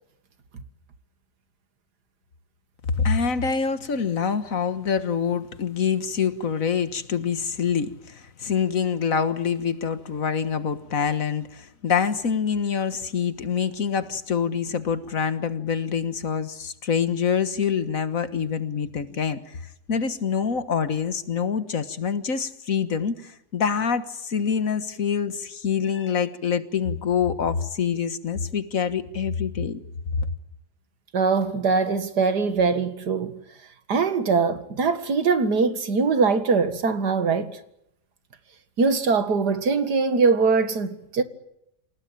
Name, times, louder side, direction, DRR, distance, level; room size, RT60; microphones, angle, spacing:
voice 1, 3.0-29.8 30.2-30.3, left 6 dB, 60° left, 1.8 m, -26 dB
voice 2, 31.1-33.3 33.9-37.6 38.8-41.2, right 4 dB, 85° right, 2.4 m, -22 dB
28.0 x 18.5 x 9.1 m
omnidirectional pair, 1.7 m